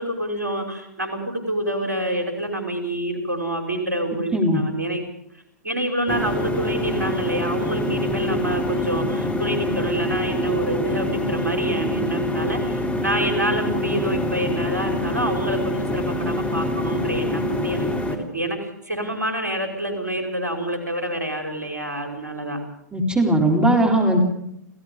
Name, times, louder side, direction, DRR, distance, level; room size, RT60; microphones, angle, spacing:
voice 1, 0.0-5.1 5.6-22.6, right 1 dB, 75° right, 4 dB, 5.3 m, -27 dB
voice 2, 4.3-4.6 22.9-24.2, right 1 dB, 10° right, 1 dB, 4.3 m, -18 dB
sound 1, 6.1-18.2, left 1 dB, 15° left, 3.4 m, -25 dB
29.5 x 16.5 x 5.3 m, 0.75 s
figure-of-eight pair, 105°, 10 cm